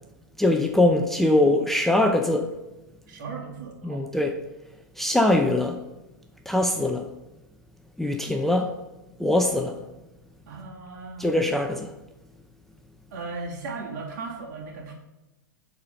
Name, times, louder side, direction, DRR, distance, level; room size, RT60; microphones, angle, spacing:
voice 1, 0.4-2.5 3.8-4.4 5.0-5.8 6.5-7.1 8.0-8.8 9.2-9.8 11.2-11.9, left 1 dB, 5° left, 0.5 m, -22 dB
voice 2, 3.1-4.1 10.5-11.3 13.1-14.9, right 4 dB, 60° right, 2.2 m, -37 dB
9.6 x 4.2 x 5.2 m
hypercardioid pair, 130°, 11 cm